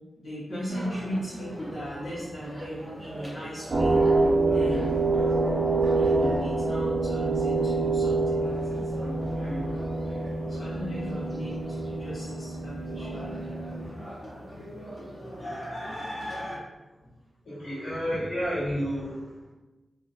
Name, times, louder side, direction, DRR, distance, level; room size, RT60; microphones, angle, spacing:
voice 1, 0.2-5.0 5.9-9.7 10.5-13.3 17.0-17.1, equal, 45° left, -11 dB, 0.8 m, -37 dB
sound 1, 0.7-16.6, equal, 20° left, 0.7 m, -41 dB
sound 2, 3.7-13.9, right 3 dB, 50° right, 0.3 m, -26 dB
voice 2, 17.5-19.5, equal, 75° left, -9 dB, 1.1 m, -31 dB
2.3 x 2.2 x 2.8 m, 1.1 s
wide cardioid pair, 165°, 0 cm